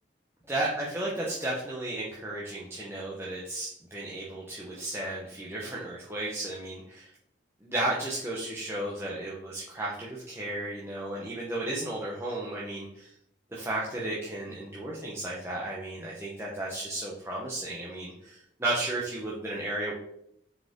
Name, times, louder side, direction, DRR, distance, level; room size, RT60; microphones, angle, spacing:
voice 1, 0.5-7.1 7.6-13.1 13.5-19.9, right 1 dB, 15° right, -5 dB, 1.1 m, -34 dB
6.3 x 4.9 x 3.8 m, 0.74 s
head